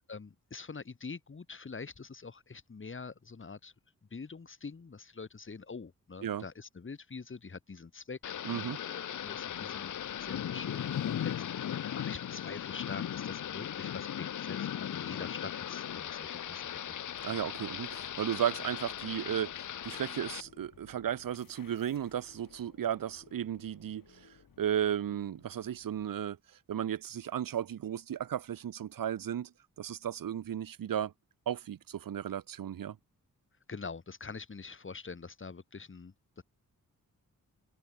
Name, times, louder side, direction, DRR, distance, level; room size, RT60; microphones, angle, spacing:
voice 1, 0.0-3.7 4.1-17.0 33.7-36.4, left 4 dB, 40° left, 6.5 m, -45 dB
Thunder / Rain, 8.2-20.4, left 10 dB, 65° left, 0.7 m, -38 dB
voice 2, 8.4-8.8 17.2-26.4 26.7-29.5 29.8-31.1 31.5-33.0, right 10 dB, 85° right, 1.1 m, -35 dB
sound 1, 9.2-26.1, left 7 dB, 90° left, 6.2 m, -59 dB
wide cardioid pair, 175°, 33 cm